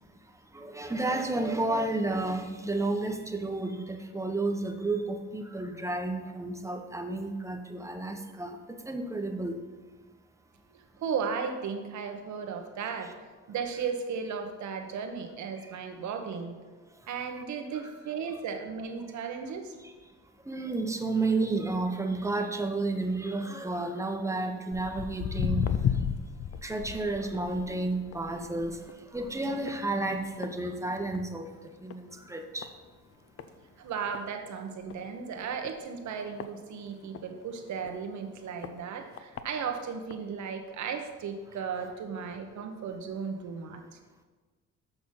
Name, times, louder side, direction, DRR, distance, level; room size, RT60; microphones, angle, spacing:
voice 1, 0.5-8.6 8.9-9.6 15.6-15.8 17.8-17.9 19.2-19.3 19.8-19.9 20.4-25.7 26.6-28.8 29.1-31.5 31.8-32.7, right 2 dB, 10° right, 5 dB, 0.9 m, -31 dB
voice 2, 10.7-13.1 13.5-16.6 17.1-19.8 33.8-44.0, right 6 dB, 70° right, 5 dB, 1.1 m, -35 dB
Walk footsteps, 24.7-31.4 31.7-32.1 32.6-32.7 33.4-33.5 33.9-34.0 34.1-34.2 34.8-35.0 35.6-37.2 37.8-37.9 38.6-38.7 39.2-39.4 40.1-40.2, left 8 dB, 50° left, 0.6 m, -34 dB
6.8 x 6.1 x 5.6 m, 1.3 s
cardioid pair, 90°, 30 cm